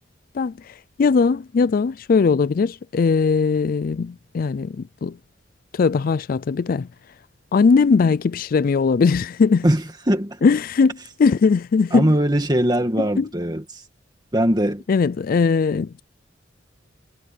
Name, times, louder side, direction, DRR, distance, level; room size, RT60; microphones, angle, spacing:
voice 1, 0.3-5.2 5.7-6.9 7.5-9.7 10.4-12.1 13.0-13.3 14.9-16.0, left 5 dB, 50° left, 0.4 m, -19 dB
voice 2, 10.1-10.4 11.9-13.8 14.3-14.8, right 1 dB, 20° right, 2.0 m, -20 dB
head